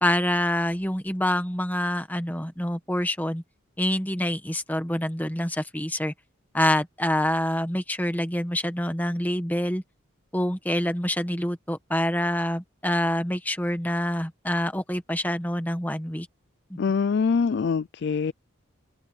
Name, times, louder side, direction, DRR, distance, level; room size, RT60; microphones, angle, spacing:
voice 1, 0.0-3.4 3.8-6.1 6.5-9.8 10.3-16.3 16.7-16.8, left 1 dB, 10° left, 1.5 m, -26 dB
voice 2, 16.8-18.3, left 5 dB, 50° left, 0.4 m, -24 dB
head